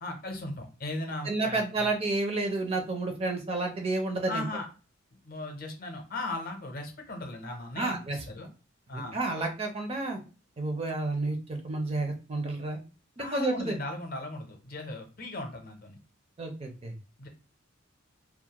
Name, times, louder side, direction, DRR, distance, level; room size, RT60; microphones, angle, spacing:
voice 1, 0.0-1.9 4.3-4.7 5.3-8.5 8.9-9.2 13.2-16.0 17.2-17.3, left 2 dB, 45° left, 3 dB, 0.6 m, -37 dB
voice 2, 1.2-4.4 7.8-8.3 8.9-10.2 10.6-12.8 13.2-13.8 16.4-16.9, right 2 dB, 30° right, 4 dB, 0.4 m, -30 dB
2.3 x 2.0 x 2.8 m, 0.35 s
head